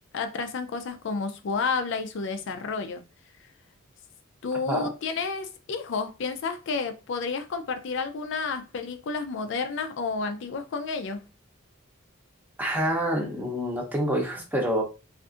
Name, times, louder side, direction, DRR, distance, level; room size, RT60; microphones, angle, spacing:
voice 1, 0.1-3.0 4.4-11.3, left 4 dB, 60° left, 0.4 m, -31 dB
voice 2, 12.6-14.8, equal, 10° right, 0.7 m, -27 dB
3.6 x 2.5 x 2.4 m
head